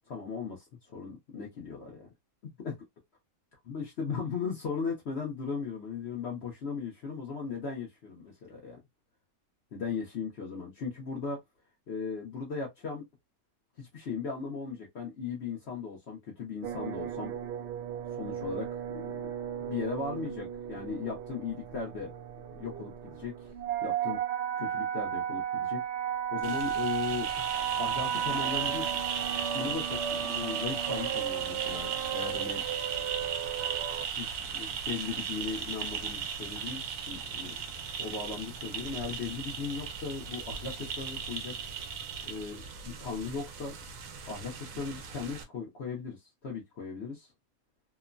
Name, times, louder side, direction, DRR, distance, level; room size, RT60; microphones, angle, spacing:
voice 1, 0.1-2.1 2.6-2.8 3.7-8.8 9.7-11.4 11.9-13.0 13.8-17.4 18.1-19.3 19.6-22.1 22.5-23.5 23.8-24.2 24.6-27.5 27.8-28.9 29.4-32.6 34.0-37.5 38.0-41.6 42.2-43.7 44.3-47.3, left 5 dB, 60° left, 1.0 m, -37 dB
sound 1, 16.6-34.1, right 9 dB, 65° right, 0.8 m, -35 dB
sound 2, 26.4-45.4, right 7 dB, 85° right, 1.0 m, -37 dB
3.0 x 2.1 x 2.4 m
omnidirectional pair, 1.4 m